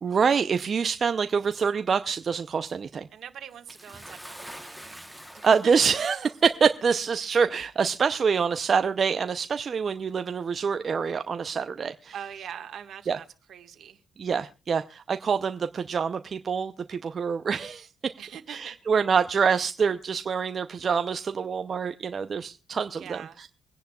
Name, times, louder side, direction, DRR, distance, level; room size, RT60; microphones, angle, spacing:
voice 1, 0.0-3.1 5.4-12.1 13.1-13.2 14.2-18.1 18.5-23.5, right 6 dB, 45° right, 0.6 m, -26 dB
voice 2, 3.1-5.0 5.3-5.7 12.1-14.0 18.2-18.8 23.0-23.4, right 9 dB, 70° right, 1.6 m, -42 dB
Bathtub (filling or washing) / Splash splatter, 3.7-6.3 7.2-7.3 8.3-8.4, equal, ahead, 1.1 m, -45 dB
24.5 x 10.5 x 2.3 m
cardioid pair, 90°, 0 cm